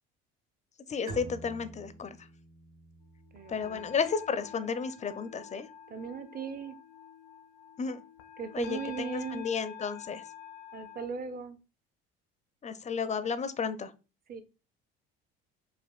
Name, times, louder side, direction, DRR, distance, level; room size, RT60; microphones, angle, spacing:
voice 1, 0.9-2.2 3.5-5.7 7.8-8.0 8.5-10.2 12.6-13.9, left 5 dB, 25° left, 11 dB, 0.5 m, -33 dB
Bowed string instrument, 1.1-4.5, right 2 dB, 50° right, 1.2 m, -48 dB
sound 1, 3.2-11.1, left 9 dB, 85° left, 0.7 m, -48 dB
voice 2, 3.3-3.9 5.9-6.8 8.4-9.5 10.7-11.6 14.3-14.4, right 6 dB, 30° right, 11 dB, 0.6 m, -38 dB
5.1 x 2.5 x 2.3 m, 0.31 s
hypercardioid pair, 70°, 30 cm